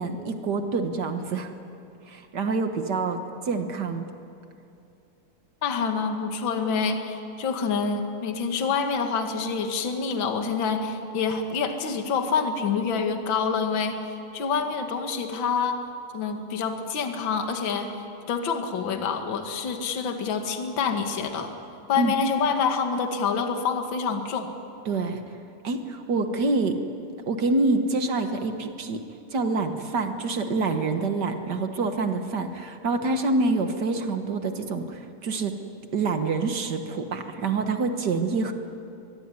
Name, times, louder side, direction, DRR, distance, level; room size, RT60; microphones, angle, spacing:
voice 1, 0.0-1.5 2.1-4.1 21.9-22.1 24.8-25.2 25.6-26.8 27.3-29.0 29.3-35.6 35.9-38.5, right 3 dB, 50° right, 6 dB, 1.3 m, -26 dB
voice 2, 5.6-14.0 14.3-15.8 16.1-17.9 18.3-21.5 21.9-24.5, left 5 dB, 40° left, 5 dB, 2.2 m, -27 dB
23.0 x 22.5 x 9.7 m, 2.7 s
omnidirectional pair, 3.8 m